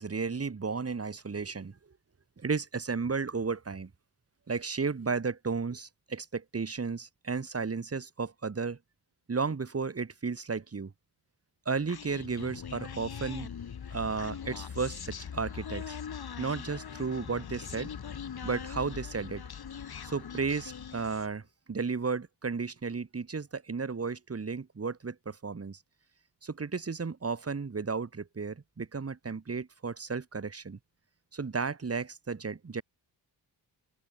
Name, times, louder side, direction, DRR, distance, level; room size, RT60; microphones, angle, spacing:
voice 1, 0.0-1.8 2.4-3.9 4.5-8.8 9.3-10.9 11.7-13.5 13.9-16.0 16.4-17.9 18.4-19.4 20.0-21.4 21.7-25.8 26.4-30.8 31.3-32.8, right 4 dB, 35° right, 3.7 m, -33 dB
Human voice, 11.9-21.4, left 7 dB, 60° left, 6.3 m, -41 dB
open air
cardioid pair, 85°, 41 cm